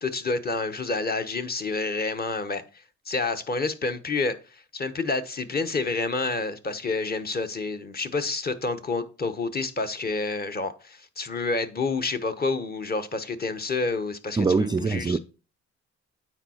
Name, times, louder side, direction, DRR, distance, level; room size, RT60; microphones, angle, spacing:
voice 1, 0.0-2.6 3.1-15.2, left 3 dB, 30° left, 1.0 m, -29 dB
voice 2, 14.4-15.2, right 4 dB, 15° right, 0.4 m, -23 dB
8.9 x 4.7 x 4.3 m
cardioid pair, 90°, 30 cm